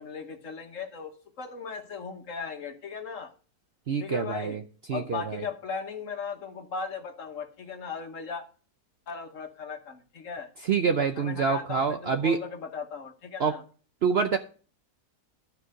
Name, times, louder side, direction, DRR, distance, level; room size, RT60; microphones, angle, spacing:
voice 1, 0.0-3.3 4.0-4.6 4.9-8.4 9.1-10.5 11.0-13.6, left 5 dB, 55° left, 6 dB, 1.5 m, -37 dB
voice 2, 3.9-4.6 4.9-5.4 10.7-12.4 13.4-13.6 14.0-14.4, right 6 dB, 60° right, 7 dB, 0.7 m, -26 dB
12.5 x 4.6 x 6.4 m, 0.40 s
omnidirectional pair, 1.6 m